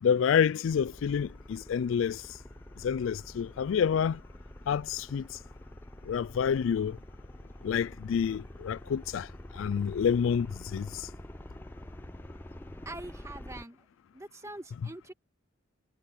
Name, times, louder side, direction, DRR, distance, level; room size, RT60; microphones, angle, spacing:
voice 1, 0.0-2.2 2.8-4.2 4.7-5.2 6.1-7.0 7.6-9.3 9.5-10.5 10.7-11.1, left 7 dB, 75° left, 0.3 m, -28 dB
sound 1, 0.7-13.6, left 1 dB, 10° left, 0.6 m, -47 dB
voice 2, 12.8-13.9 14.1-15.1, right 2 dB, 15° right, 1.7 m, -44 dB
head